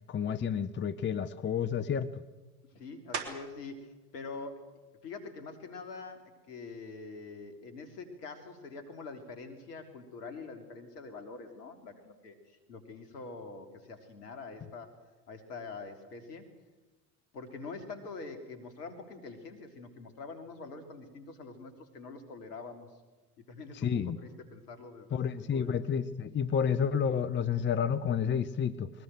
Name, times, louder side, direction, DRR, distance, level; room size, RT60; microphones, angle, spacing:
voice 1, 0.1-2.1 23.8-24.2 25.1-28.9, left 7 dB, 25° left, 12 dB, 0.9 m, -30 dB
voice 2, 2.7-4.7 5.0-15.0 15.3-16.5 17.3-22.9 23.5-25.8, left 4 dB, 75° left, 7 dB, 3.3 m, -45 dB
sound 1, 3.1-3.7 4.3-8.7 9.2-14.4 14.7-20.3, right 5 dB, 65° right, 3.4 m, -50 dB
21.5 x 19.5 x 7.7 m, 1.2 s
hypercardioid pair, 75°, 48 cm